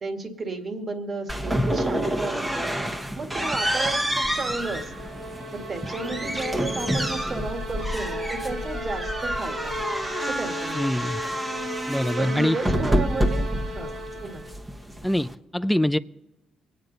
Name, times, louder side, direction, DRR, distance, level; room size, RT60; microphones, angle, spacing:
voice 1, 0.0-5.2 5.5-9.9 10.2-11.0 12.1-14.4, right 3 dB, 40° right, 5 dB, 1.8 m, -33 dB
sound 1, 1.3-15.3, equal, 15° right, 1.1 m, -28 dB
sound 2, 4.0-14.6, equal, 60° right, 2.9 m, -36 dB
voice 2, 10.8-11.2 11.9-12.6 15.0-16.0, left 1 dB, 5° left, 13 dB, 0.4 m, -24 dB
24.0 x 9.3 x 4.0 m, 1.0 s
cardioid pair, 90°, 0 cm